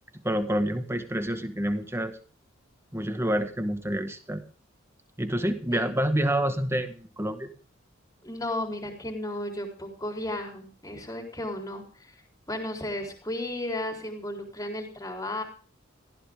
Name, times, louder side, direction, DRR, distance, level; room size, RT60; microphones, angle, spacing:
voice 1, 0.2-2.2 2.9-4.4 5.2-7.5, right 1 dB, 15° right, 8 dB, 1.7 m, -28 dB
voice 2, 8.2-12.1 12.5-15.4, left 1 dB, 15° left, 2 dB, 4.1 m, -34 dB
18.0 x 15.5 x 3.7 m, 0.41 s
head